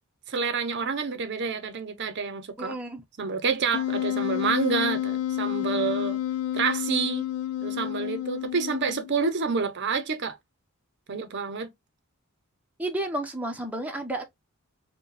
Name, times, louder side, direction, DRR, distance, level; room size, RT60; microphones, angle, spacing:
voice 1, 0.3-2.7 3.2-6.2 6.5-7.3 7.6-10.4 11.1-11.7, right 5 dB, 55° right, 0.6 m, -28 dB
voice 2, 2.6-3.0 12.8-14.3, right 1 dB, 5° right, 0.6 m, -31 dB
Wind instrument woodwind instrument, 3.7-9.1, left 12 dB, 85° left, 0.3 m, -30 dB
4.7 x 2.2 x 3.2 m
head